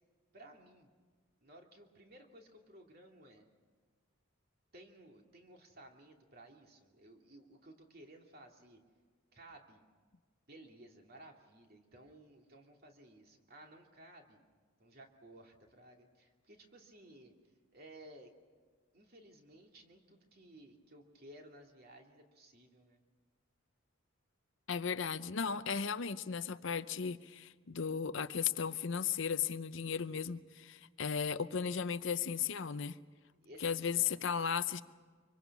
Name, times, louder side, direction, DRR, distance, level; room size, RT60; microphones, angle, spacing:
voice 1, 0.3-0.9 1.4-3.5 4.7-8.8 9.3-9.8 10.5-14.4 14.8-17.3 17.7-18.3 18.9-23.0 33.4-34.4, right 1 dB, 45° right, 2 dB, 2.7 m, -57 dB
voice 2, 24.7-33.0 33.6-34.8, left 7 dB, 60° left, 13 dB, 0.6 m, -35 dB
25.5 x 24.5 x 6.1 m, 1.5 s
head